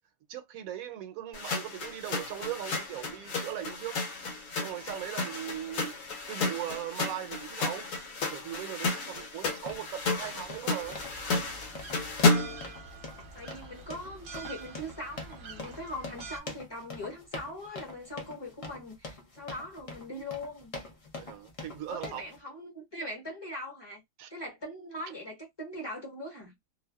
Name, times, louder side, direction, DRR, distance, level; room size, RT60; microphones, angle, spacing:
voice 1, 0.3-4.0 4.6-5.9 6.3-7.9 8.3-11.0 21.1-22.2 24.2-24.3, right 11 dB, 75° right, 1.0 m, -39 dB
sound 1, 1.3-12.7, left 3 dB, 75° left, 1.0 m, -32 dB
sound 2, 9.5-22.4, left 3 dB, 45° left, 0.4 m, -44 dB
sound 3, 10.8-16.4, right 4 dB, 50° right, 0.7 m, -46 dB
voice 2, 13.3-20.8 21.9-24.0 24.3-26.5, left 1 dB, 20° left, 0.9 m, -41 dB
2.6 x 2.2 x 2.2 m
omnidirectional pair, 1.5 m